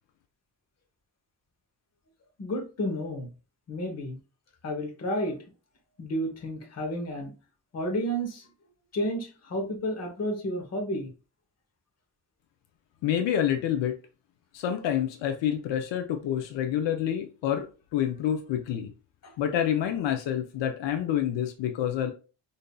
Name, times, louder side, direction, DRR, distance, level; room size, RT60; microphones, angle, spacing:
voice 1, 2.4-3.3 3.7-4.2 4.6-5.4 6.0-7.3 7.7-8.5 8.9-11.1 19.2-19.3, equal, 35° left, 2 dB, 0.9 m, -31 dB
voice 2, 13.0-13.9 14.5-17.7 17.9-18.9 19.4-22.1, left 10 dB, 80° left, 5 dB, 0.6 m, -27 dB
5.1 x 2.7 x 2.3 m, 0.35 s
cardioid pair, 170°, 43 cm